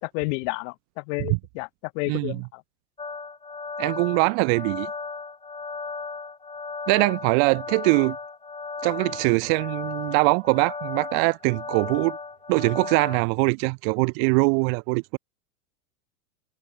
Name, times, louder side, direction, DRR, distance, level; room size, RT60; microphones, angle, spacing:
voice 1, 0.0-1.7 1.9-2.6, left 32 dB, 55° left, 1.5 m, -31 dB
voice 2, 2.1-2.4 3.8-4.9 6.9-8.2 8.8-12.2 12.5-15.2, right 40 dB or more, 45° right, 0.5 m, -22 dB
sound 1, 3.0-13.2, left 4 dB, 15° left, 4.6 m, -35 dB
supercardioid pair, 125°, 43 cm